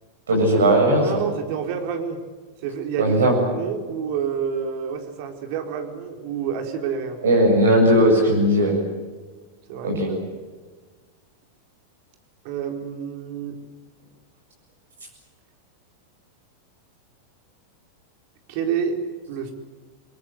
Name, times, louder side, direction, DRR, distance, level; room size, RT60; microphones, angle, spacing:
voice 1, 0.3-1.2 3.0-3.3 7.2-8.7 9.8-10.1, right 1 dB, 65° right, -1 dB, 7.8 m, -17 dB
voice 2, 1.0-2.2 2.6-7.2 9.7-10.2 12.4-13.6 18.5-19.0 19.3-19.5, right 7 dB, 45° right, 4 dB, 4.4 m, -28 dB
29.5 x 23.0 x 7.9 m, 1.4 s
figure-of-eight pair, 90°, 0 cm